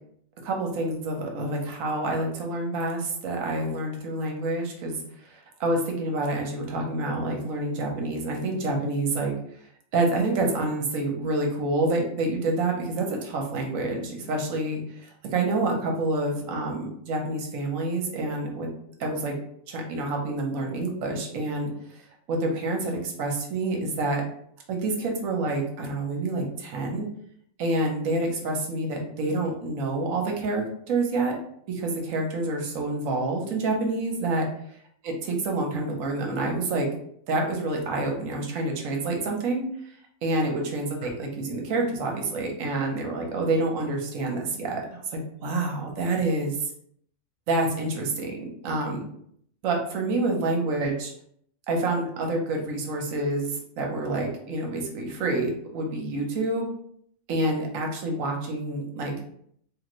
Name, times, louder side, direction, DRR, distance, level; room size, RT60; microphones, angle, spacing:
voice 1, 0.4-9.3 9.9-18.7 19.0-19.4 19.7-24.2 24.7-27.1 27.6-31.4 31.7-34.5 35.2-36.9 37.3-39.7 40.2-46.7 47.5-49.0 49.6-51.1 51.7-56.7 57.3-59.3, right 2 dB, 65° right, 1 dB, 1.0 m, -28 dB
3.2 x 2.5 x 2.9 m, 0.67 s
omnidirectional pair, 1.6 m